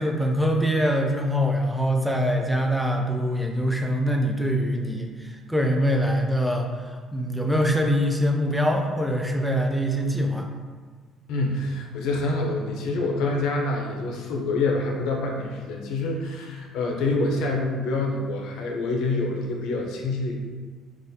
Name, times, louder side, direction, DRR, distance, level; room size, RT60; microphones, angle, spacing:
voice 1, 0.0-10.5, equal, ahead, 1 dB, 0.3 m, -24 dB
voice 2, 11.3-20.4, left 2 dB, 80° left, 0 dB, 0.6 m, -26 dB
3.9 x 2.4 x 2.7 m, 1.5 s
cardioid pair, 140°, 0 cm